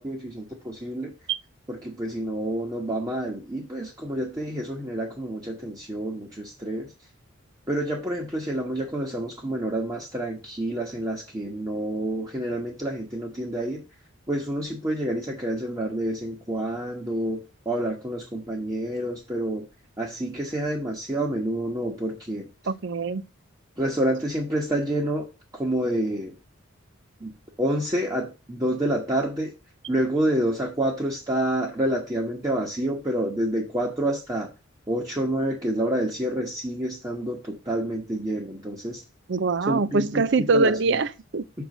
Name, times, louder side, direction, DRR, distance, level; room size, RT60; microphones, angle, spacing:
voice 1, 0.0-1.1 1.7-6.9 7.7-13.8 14.3-19.6 20.0-22.5 23.8-25.3 25.5-26.3 27.2-27.3 27.6-29.5 29.9-34.5 34.9-39.0 39.7-40.3 40.5-41.0 41.6-41.7, right 1 dB, 15° right, 1.2 m, -28 dB
voice 2, 22.7-23.2 39.3-41.4, right 4 dB, 55° right, 0.5 m, -23 dB
6.3 x 4.7 x 6.5 m
head